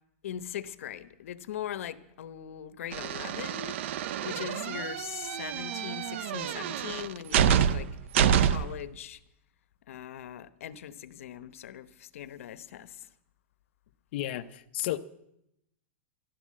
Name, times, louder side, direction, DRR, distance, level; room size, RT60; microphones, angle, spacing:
voice 1, 0.2-3.8 4.2-7.9 8.2-9.2 9.9-13.1, left 10 dB, 80° left, 14 dB, 0.9 m, -40 dB
sound 1, 2.9-8.8, right 9 dB, 60° right, 0.6 m, -28 dB
voice 2, 14.1-15.0, left 14 dB, 50° left, 8 dB, 0.6 m, -32 dB
13.0 x 12.0 x 7.5 m, 0.81 s
supercardioid pair, 165°, 7 cm